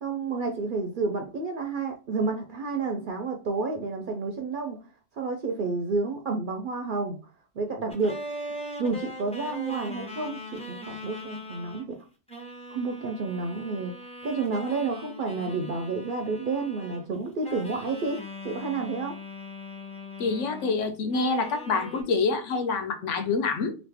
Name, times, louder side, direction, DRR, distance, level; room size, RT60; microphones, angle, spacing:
voice 1, 0.0-4.8 5.1-7.2 7.6-8.2 8.8-12.0 12.7-13.9 14.2-18.2 18.4-19.2, right 4 dB, 60° right, 0.5 m, -30 dB
sound 1, 7.9-11.9 12.3-17.1 17.4-20.8 21.1-22.0, left 1 dB, 5° left, 0.6 m, -40 dB
voice 2, 20.2-23.8, left 4 dB, 70° left, 1.0 m, -26 dB
3.0 x 2.5 x 3.3 m
omnidirectional pair, 1.3 m